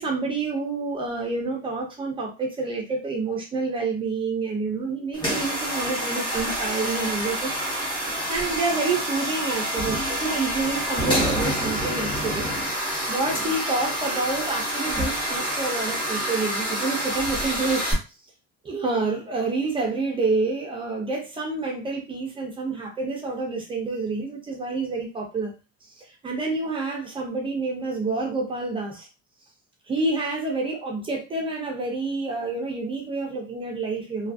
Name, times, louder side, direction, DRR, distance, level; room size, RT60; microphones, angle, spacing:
voice 1, 0.0-12.5 13.1-17.9 18.6-25.5 25.8-29.1 29.9-34.3, right 3 dB, 15° right, -1 dB, 0.4 m, -28 dB
sound 1, 5.1-17.9, equal, 15° left, 1.0 m, -27 dB
2.6 x 2.4 x 2.4 m, 0.30 s
cardioid pair, 175°, 31 cm